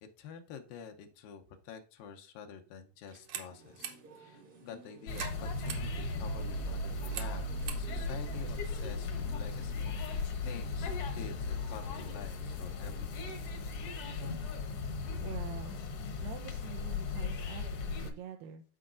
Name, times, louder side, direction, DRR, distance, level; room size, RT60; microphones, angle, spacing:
voice 1, 0.2-13.3, left 7 dB, 90° left, 4 dB, 2.6 m, -48 dB
sound 1, 3.0-9.3, right 9 dB, 65° right, 2.1 m, -47 dB
sound 2, 3.4-13.4, right 1 dB, 45° right, 1.0 m, -56 dB
sound 3, 5.1-18.1, left 3 dB, 65° left, 1.5 m, -37 dB
voice 2, 15.2-15.8 16.2-18.6, right 9 dB, 85° right, 4 dB, 2.4 m, -46 dB
14.0 x 4.7 x 2.5 m, 0.37 s
omnidirectional pair, 4.0 m